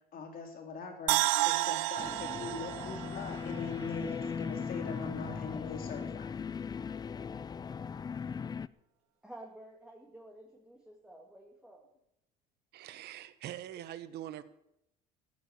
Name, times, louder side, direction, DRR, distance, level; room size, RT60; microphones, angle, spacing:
voice 1, 0.1-1.2 1.4-6.4, left 4 dB, 50° left, 3 dB, 3.6 m, -42 dB
sound 1, 1.1-4.3 4.6-4.7, right 19 dB, 80° right, 0.6 m, -32 dB
sound 2, 2.0-8.7, left 6 dB, 20° left, 0.4 m, -38 dB
voice 2, 9.2-11.8, right 1 dB, 5° right, 0 dB, 2.2 m, -51 dB
voice 3, 12.7-14.4, right 12 dB, 60° right, 14 dB, 1.1 m, -43 dB
15.0 x 8.5 x 6.9 m, 0.83 s
supercardioid pair, 100°, 19 cm